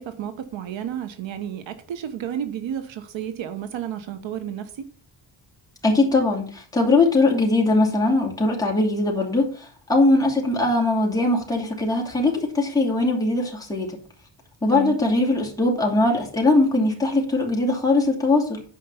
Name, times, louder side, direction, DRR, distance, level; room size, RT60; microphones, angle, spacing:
voice 1, 0.0-4.9 14.7-15.0, right 9 dB, 80° right, 1.2 m, -32 dB
voice 2, 5.8-14.0 14.6-18.6, left 2 dB, 10° left, 2.8 m, -21 dB
9.4 x 5.5 x 7.0 m
wide cardioid pair, 145°, 45 cm